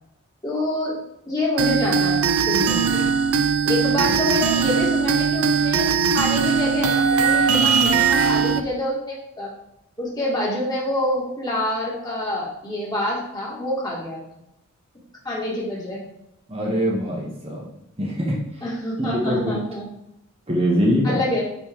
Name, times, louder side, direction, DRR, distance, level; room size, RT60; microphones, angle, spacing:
voice 1, 0.4-1.0 1.2-3.1 3.6-5.9 6.1-9.5 10.0-14.2 15.2-16.0 18.6-19.9 21.0-21.4, left 1 dB, 20° left, -5 dB, 2.2 m, -26 dB
sound 1, 1.6-8.6, right 6 dB, 70° right, 0.5 m, -20 dB
voice 2, 16.5-17.6 18.0-18.4 19.0-19.5 20.5-21.2, equal, 25° right, -3 dB, 1.3 m, -23 dB
9.4 x 4.2 x 3.7 m, 0.81 s
head